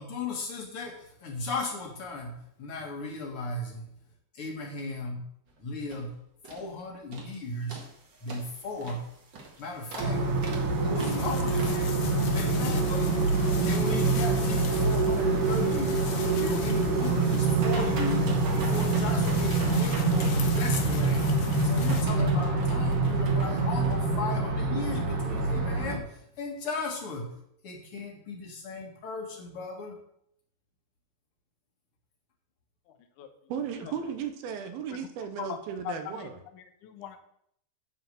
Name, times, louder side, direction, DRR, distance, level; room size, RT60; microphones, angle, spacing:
voice 1, 0.0-3.9 4.3-5.3 5.6-6.1 6.5-7.8 8.2-9.0 9.6-10.2 10.8-13.1 13.6-16.1 16.4-18.3 18.5-27.4 27.6-30.0, left 3 dB, 45° left, 1 dB, 2.5 m, -36 dB
sound 1, 5.5-5.6 5.9-6.1 6.4-6.7 7.1-7.4 7.7-24.0, right 4 dB, 40° right, 1.7 m, -41 dB
sound 2, 10.0-26.0, right 3 dB, 65° right, 2.9 m, -26 dB
sound 3, 11.0-22.0, left 9 dB, 85° left, 1.5 m, -43 dB
voice 2, 32.9-33.3 33.8-34.0 34.9-35.0 35.4-35.6 35.8-37.2, left 10 dB, 70° left, 6 dB, 2.3 m, -40 dB
voice 3, 33.5-36.4, right 7 dB, 85° right, 8 dB, 2.9 m, -35 dB
11.0 x 5.0 x 7.8 m, 0.72 s
omnidirectional pair, 4.3 m